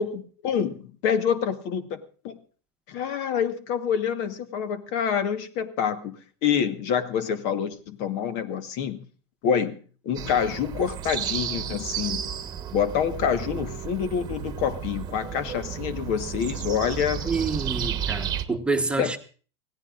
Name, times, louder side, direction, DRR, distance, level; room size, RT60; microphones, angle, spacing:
voice 1, 0.0-2.4 2.9-9.0 9.4-9.8 10.0-12.2 12.7-17.3 19.0-19.2, left 7 dB, 55° left, 10 dB, 1.4 m, -27 dB
sound 1, 10.1-18.4, right 9 dB, 30° right, 1.2 m, -33 dB
voice 2, 17.2-19.2, right 3 dB, 5° right, 5 dB, 1.2 m, -27 dB
25.0 x 17.0 x 2.5 m, 0.40 s
supercardioid pair, 125°, 14 cm